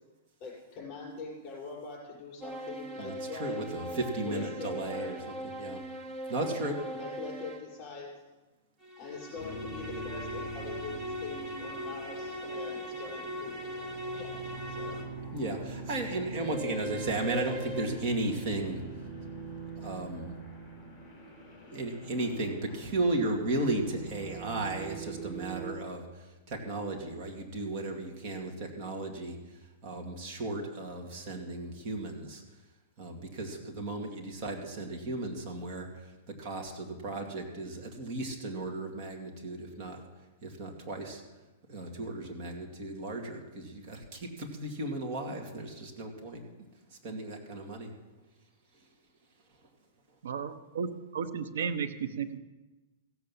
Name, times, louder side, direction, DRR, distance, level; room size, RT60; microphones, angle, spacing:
voice 1, 0.4-3.6 4.2-5.2 6.4-8.1 9.0-13.6 14.1-14.3 14.7-15.0, left 4 dB, 35° left, -3 dB, 6.3 m, -43 dB
sound 1, 2.4-7.8 8.8-15.3 16.3-17.9, equal, 10° right, 1.3 m, -40 dB
voice 2, 3.0-5.2 5.6-5.8 6.3-6.7 15.3-18.8 19.8-20.3 21.7-26.0 26.5-29.4 29.8-32.4 33.0-36.1 36.4-40.0 40.4-41.2 41.7-46.4 47.0-47.9, right 2 dB, 40° right, 1 dB, 2.4 m, -35 dB
sound 2, 9.4-25.7, right 3 dB, 5° left, 4.9 m, -44 dB
voice 3, 50.2-52.4, right 6 dB, 90° right, 11 dB, 1.1 m, -34 dB
15.5 x 8.0 x 7.2 m, 1.1 s
supercardioid pair, 155°, 0 cm